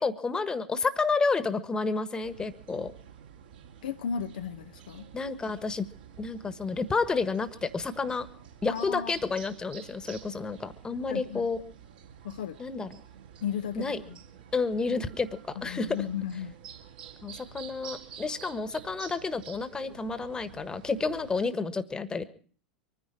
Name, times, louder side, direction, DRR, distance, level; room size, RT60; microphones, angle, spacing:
voice 1, 0.0-2.9 5.1-5.8 6.2-8.3 8.6-11.6 12.6-12.9 13.7-14.0 14.5-16.0 17.2-22.3, left 4 dB, 15° left, 1.4 m, -30 dB
sound 1, 2.2-21.4, right 8 dB, 65° right, 2.9 m, -49 dB
voice 2, 3.8-5.1 8.7-9.1 11.1-11.4 12.2-12.6 13.4-14.2 14.9-15.1 15.6-16.5, left 8 dB, 65° left, 0.7 m, -35 dB
25.0 x 10.0 x 4.6 m
figure-of-eight pair, 85°, 5 cm